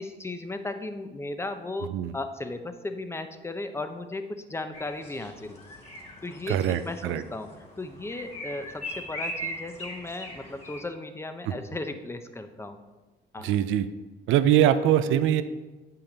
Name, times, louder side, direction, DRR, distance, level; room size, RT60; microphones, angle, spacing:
voice 1, 0.0-5.6 6.2-6.6 6.8-12.8 13.3-13.5, left 2 dB, 15° left, 8 dB, 0.7 m, -36 dB
sound 1, 4.7-10.8, equal, 30° left, 2.4 m, -40 dB
voice 2, 6.5-7.2 11.5-11.6 13.4-13.9 14.3-15.4, right 11 dB, 85° right, 12 dB, 0.5 m, -22 dB
8.5 x 5.6 x 4.0 m, 1.2 s
cardioid pair, 90°, 20 cm